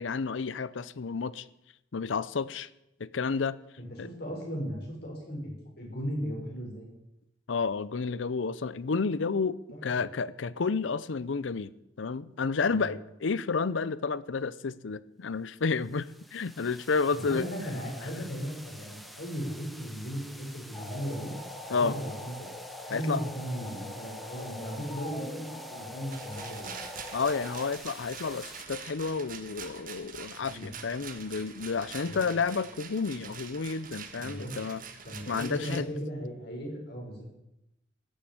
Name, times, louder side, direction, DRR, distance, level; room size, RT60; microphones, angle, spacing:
voice 1, 0.0-1.5 1.9-2.7 3.0-3.6 4.0-4.1 7.5-9.6 9.8-11.7 12.0-17.4 18.2-18.3 21.7-21.9 22.9-23.2 27.1-34.8 35.3-35.9, left 4 dB, 85° left, 0.6 m, -31 dB
voice 2, 3.8-6.9 9.7-10.1 12.7-12.9 17.1-21.3 21.7-22.5 22.9-26.7 30.4-30.7 32.0-32.2 34.2-34.5 35.1-37.2, equal, 60° left, 5.4 m, -37 dB
sound 1, 15.6-28.7, equal, ahead, 0.9 m, -49 dB
sound 2, 20.7-27.7, left 1 dB, 15° left, 3.2 m, -43 dB
Rattle, 26.1-35.8, right 6 dB, 45° right, 1.6 m, -45 dB
15.0 x 7.8 x 8.7 m
head